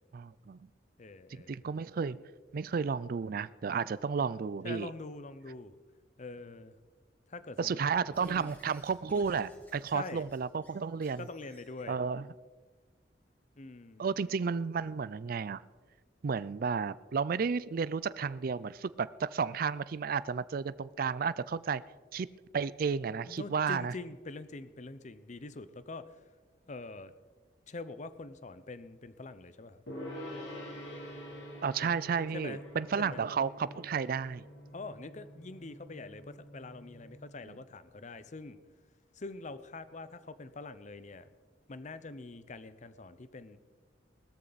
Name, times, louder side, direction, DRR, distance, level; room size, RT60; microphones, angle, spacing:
voice 1, 0.1-0.6 1.3-2.2 2.5-4.9 7.6-11.3 11.9-12.3 14.0-15.6 16.2-21.8 22.1-22.3 22.5-23.9 31.6-34.4, right 6 dB, 50° right, 18 dB, 0.4 m, -32 dB
voice 2, 1.0-1.6 4.6-5.7 6.2-6.7 7.3-7.8 8.2-8.5 9.9-10.3 11.2-12.0 13.6-14.1 23.3-26.1 26.7-27.1 27.7-29.8 31.8-31.9 32.3-32.6 33.0-33.2 34.7-38.6 39.2-41.3 41.7-43.6, left 3 dB, 40° left, 13 dB, 0.7 m, -44 dB
Squeak / Writing, 8.1-11.9, equal, 10° left, 4.4 m, -58 dB
Gong, 29.9-37.3, equal, 85° left, 3.3 m, -46 dB
18.5 x 13.5 x 4.1 m, 1.4 s
head